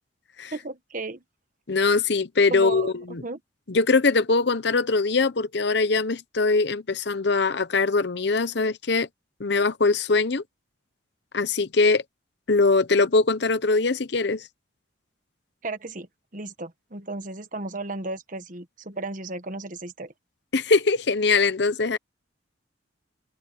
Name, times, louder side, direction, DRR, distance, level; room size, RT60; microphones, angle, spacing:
voice 1, 0.5-1.2 2.5-3.4 15.6-16.1 16.3-20.1, right 2 dB, 40° right, 1.3 m, -34 dB
voice 2, 1.7-3.2 3.7-9.1 9.4-10.4 11.3-12.0 12.5-14.4 20.5-22.0, left 3 dB, 60° left, 0.8 m, -22 dB
open air
head